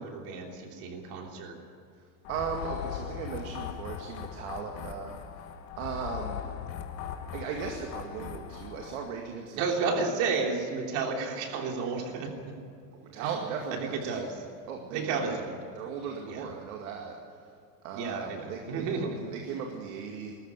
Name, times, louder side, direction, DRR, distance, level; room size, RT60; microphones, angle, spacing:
voice 1, 0.0-1.6 9.6-12.6 13.2-13.3 13.9-14.4 14.9-15.6 16.2-16.5 17.9-19.2, right 4 dB, 45° right, 2 dB, 3.3 m, -32 dB
voice 2, 1.9-5.4 5.8-6.5 7.3-9.8 12.9-14.4 14.7-15.4 15.8-17.5 17.8-20.3, right 6 dB, 75° right, 2 dB, 2.3 m, -38 dB
sound 1, 2.2-9.1, left 9 dB, 35° left, 1.5 m, -39 dB
19.5 x 14.0 x 9.7 m, 2.4 s
supercardioid pair, 170°, 41 cm